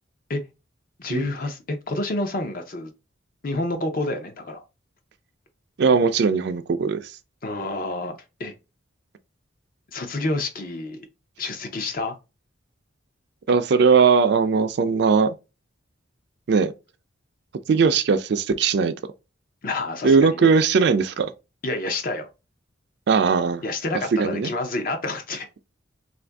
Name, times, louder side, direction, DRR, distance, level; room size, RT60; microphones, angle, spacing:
voice 1, 1.0-2.9 3.4-4.6 7.4-8.5 9.9-11.1 11.4-12.2 19.6-20.5 21.6-22.3 23.6-25.5, left 2 dB, 45° left, 0.6 m, -28 dB
voice 2, 5.8-7.0 13.5-15.3 16.5-16.7 17.7-18.9 20.0-21.3 23.1-23.6 24.2-24.5, right 5 dB, 60° right, 0.3 m, -19 dB
2.6 x 2.5 x 3.3 m
head